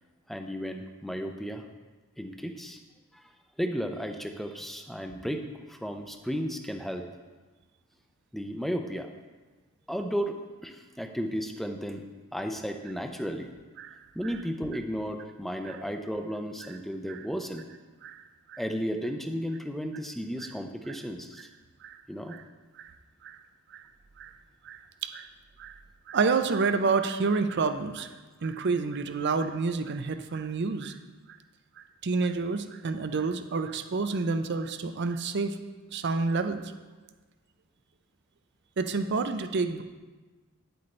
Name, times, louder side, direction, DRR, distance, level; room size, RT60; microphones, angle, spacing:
voice 1, 0.3-1.6 2.2-2.8 3.1-3.2 3.6-7.1 8.3-9.1 9.9-12.0 12.3-13.5 14.1-17.7 18.6-21.5 22.1-22.3, equal, ahead, 5 dB, 0.5 m, -34 dB
voice 2, 24.6-25.3 25.6-25.8 26.1-28.1 28.4-30.9 31.3-31.4 31.8-35.6 35.9-36.6 38.8-39.8, right 4 dB, 50° right, 9 dB, 0.5 m, -29 dB
9.9 x 7.9 x 3.3 m, 1.3 s
head